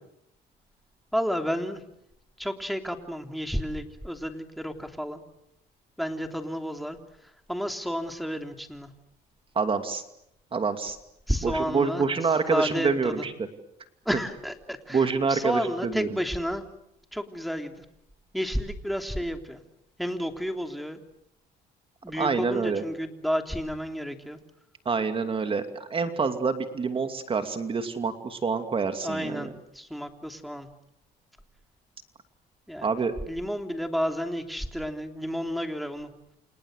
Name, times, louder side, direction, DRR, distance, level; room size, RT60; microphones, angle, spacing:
voice 1, 1.1-1.8 2.4-5.2 6.0-7.0 7.5-8.9 11.3-12.1 12.5-13.3 14.1-16.7 17.1-17.9 18.3-19.6 20.0-21.0 22.0-24.4 29.0-29.5 29.7-30.7 32.7-33.0 33.3-36.1, equal, ahead, 5 dB, 3.3 m, -31 dB
voice 2, 9.5-10.0 10.5-11.0 11.4-13.5 14.9-16.1 22.1-22.8 24.8-29.5 32.8-33.1, right 5 dB, 30° right, 7 dB, 2.6 m, -27 dB
30.0 x 27.5 x 6.6 m, 0.79 s
cardioid pair, 110°, 17 cm